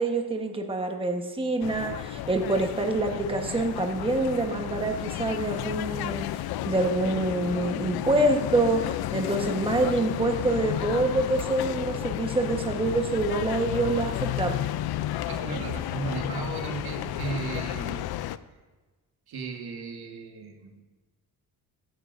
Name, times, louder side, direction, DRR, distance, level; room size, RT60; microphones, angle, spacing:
voice 1, 0.0-6.2 6.7-8.8 9.1-14.7, right 2 dB, 15° right, 3 dB, 1.1 m, -26 dB
sound 1, 1.6-18.4, left 13 dB, 70° left, 0.5 m, -32 dB
voice 2, 15.2-18.0 19.3-20.8, right 4 dB, 70° right, 3 dB, 1.7 m, -35 dB
15.5 x 11.5 x 2.6 m, 1.3 s
cardioid pair, 90°, 39 cm